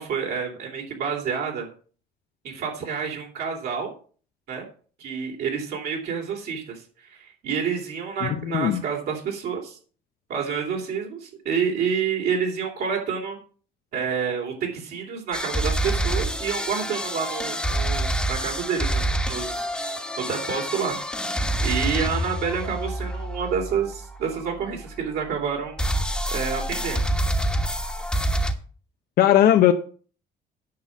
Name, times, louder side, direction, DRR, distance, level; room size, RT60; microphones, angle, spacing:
voice 1, 0.0-1.7 2.4-3.9 4.5-4.6 5.0-6.8 7.1-9.8 10.3-13.4 13.9-19.6 20.2-21.0 21.6-25.8 26.3-27.0, right 6 dB, 70° right, 3.3 m, -28 dB
voice 2, 8.2-8.8 29.2-29.7, left 12 dB, 65° left, 0.8 m, -18 dB
sound 1, 15.3-25.3 25.8-28.5, right 1 dB, 5° left, 1.3 m, -27 dB
9.6 x 5.6 x 7.4 m
cardioid pair, 110°, 17 cm